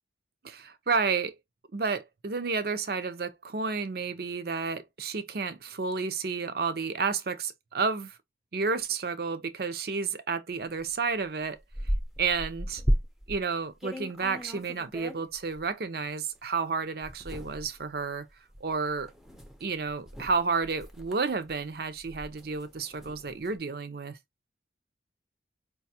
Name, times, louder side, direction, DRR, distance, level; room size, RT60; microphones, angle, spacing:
voice 1, 0.4-1.3 1.7-8.2 8.5-11.6 12.2-12.8 13.3-18.3 18.6-19.1 19.6-24.2, right 4 dB, 55° right, 0.6 m, -31 dB
sound 1, 10.8-10.9 11.2-13.4 13.8-15.6 16.3-16.4 17.0-23.6, equal, ahead, 0.5 m, -35 dB
4.8 x 2.3 x 2.7 m
head